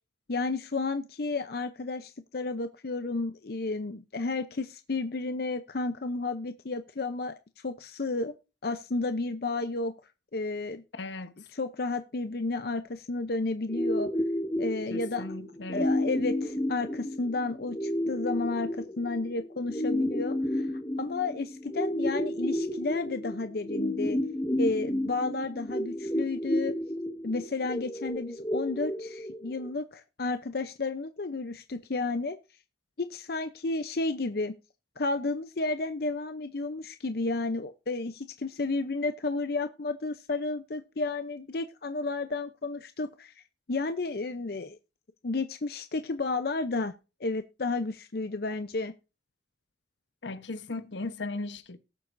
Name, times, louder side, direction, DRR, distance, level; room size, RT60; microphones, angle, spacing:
voice 1, 0.3-7.3 7.6-8.3 8.6-9.9 10.3-10.8 11.5-14.1 14.6-15.2 15.7-20.7 21.0-24.2 24.6-26.7 27.2-32.4 33.0-34.5 35.0-43.3 43.7-44.8 45.2-46.9 47.2-48.9, left 3 dB, 55° left, 0.7 m, -32 dB
voice 2, 10.9-11.3 14.9-15.9 50.2-51.8, left 2 dB, 80° left, 1.0 m, -37 dB
sound 1, 13.7-29.7, left 1 dB, 20° left, 1.8 m, -31 dB
18.5 x 7.6 x 2.6 m
head